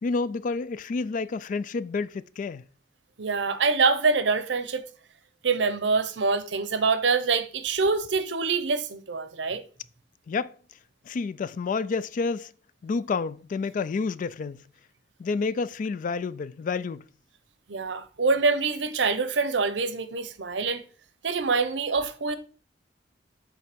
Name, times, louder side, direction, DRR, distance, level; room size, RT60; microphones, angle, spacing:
voice 1, 0.0-2.6 10.3-10.5 11.1-12.5 12.8-14.6 15.2-17.0, left 4 dB, 45° left, 0.3 m, -29 dB
voice 2, 3.2-4.8 5.4-9.6 17.7-20.8 21.2-22.4, right 4 dB, 80° right, 0.7 m, -25 dB
7.6 x 3.2 x 5.1 m
head